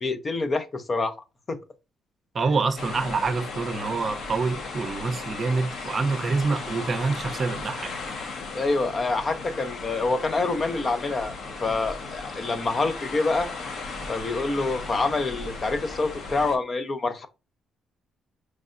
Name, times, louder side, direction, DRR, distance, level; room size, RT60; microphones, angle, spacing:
voice 1, 0.0-1.2 1.5-1.6 8.5-11.3 11.6-13.5 14.1-17.3, left 3 dB, 35° left, 0.6 m, -26 dB
voice 2, 2.3-8.2, right 4 dB, 45° right, 0.6 m, -26 dB
sound 1, 2.8-16.6, left 3 dB, 65° left, 1.1 m, -36 dB
5.2 x 3.3 x 2.5 m
cardioid pair, 90°, 0 cm